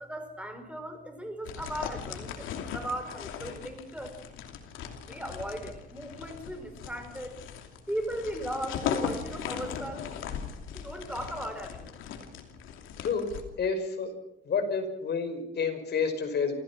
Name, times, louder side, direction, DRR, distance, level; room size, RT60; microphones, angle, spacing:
voice 1, 0.0-4.2 5.1-7.4 7.9-10.1 10.7-12.0, right 1 dB, 5° right, 7 dB, 5.1 m, -37 dB
sound 1, 1.4-13.4, left 8 dB, 90° left, 2.8 m, -38 dB
voice 2, 13.0-13.3 13.6-14.1 14.4-16.5, left 5 dB, 55° left, 6 dB, 5.4 m, -29 dB
28.0 x 15.5 x 6.1 m, 0.82 s
cardioid pair, 90°, 20 cm